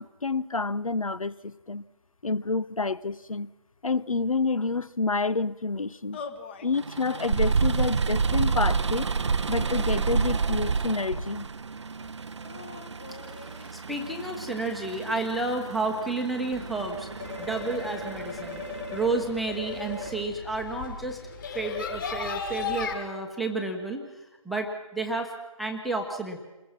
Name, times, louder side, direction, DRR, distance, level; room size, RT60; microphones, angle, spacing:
voice 1, 0.0-1.8 2.2-3.5 3.8-6.2 6.6-9.1 9.5-11.5, left 3 dB, 70° left, 1.0 m, -28 dB
sound 1, 6.1-6.7 7.1-7.7 8.4-9.3 10.0-11.0 12.4-13.8, left 5 dB, 20° left, 1.2 m, -45 dB
sound 2, 6.8-20.2, right 5 dB, 55° right, 0.7 m, -30 dB
voice 2, 13.7-21.2 21.5-26.4, right 2 dB, ahead, 1.0 m, -31 dB
sound 3, 16.5-22.9, left 5 dB, 35° left, 6.0 m, -36 dB
28.5 x 21.0 x 6.1 m
figure-of-eight pair, 155°, 18 cm